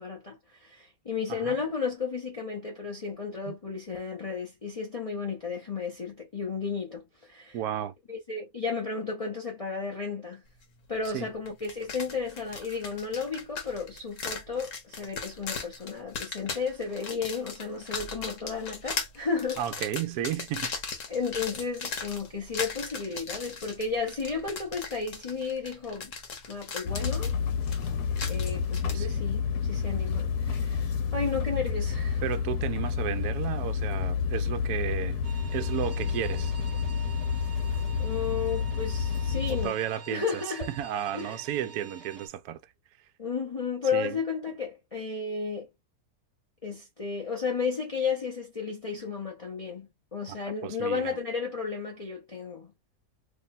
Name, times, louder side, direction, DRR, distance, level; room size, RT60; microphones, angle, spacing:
voice 1, 0.0-7.6 8.1-10.4 10.9-19.6 21.1-26.1 26.5-27.3 28.3-32.2 38.0-39.8 40.1-40.7 41.1-41.4 43.2-45.7 46.6-52.7, left 5 dB, 30° left, 0.7 m, -33 dB
voice 2, 7.5-7.9 11.1-11.3 19.6-20.7 28.9-29.2 32.2-35.2 35.5-36.5 39.5-40.4 40.7-42.6 43.9-44.2 50.3-50.4 50.6-51.2, right 11 dB, 75° right, 1.0 m, -33 dB
sound 1, 11.1-11.2 11.5-29.0, left 5 dB, 60° left, 1.2 m, -38 dB
sound 2, 26.9-39.7, left 6 dB, 85° left, 1.3 m, -29 dB
sound 3, 35.2-42.3, right 5 dB, 45° right, 0.9 m, -48 dB
3.0 x 2.2 x 4.0 m
omnidirectional pair, 1.7 m